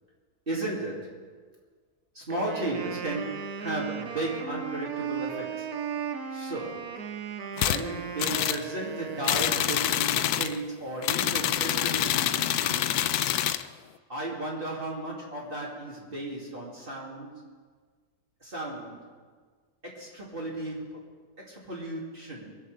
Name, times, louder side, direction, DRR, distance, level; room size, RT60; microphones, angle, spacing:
voice 1, 0.5-1.2 2.1-5.7 6.3-6.9 7.5-13.1 14.1-17.4 18.4-19.1 19.8-21.0 21.4-22.6, right 1 dB, 35° right, -4 dB, 2.8 m, -35 dB
Wind instrument woodwind instrument, 2.3-9.9, right 7 dB, 80° right, 1.6 m, -37 dB
sound 1, 7.6-7.8 8.2-8.6 9.2-10.6 11.0-13.6, left 11 dB, 90° left, 1.2 m, -26 dB
22.5 x 7.6 x 6.7 m, 1.5 s
omnidirectional pair, 1.6 m